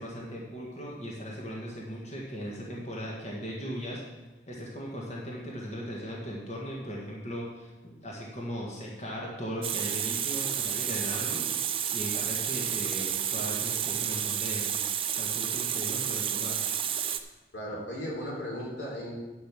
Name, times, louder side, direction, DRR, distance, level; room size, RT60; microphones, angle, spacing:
voice 1, 0.0-4.0 4.5-11.5 11.9-14.7 15.1-16.6, equal, 40° left, -3 dB, 1.7 m, -38 dB
Water tap faucet, 9.6-17.2, right 9 dB, 30° right, 0.5 m, -30 dB
voice 2, 17.5-19.1, equal, 85° left, -3 dB, 3.2 m, -36 dB
10.0 x 5.6 x 7.4 m, 1.1 s
head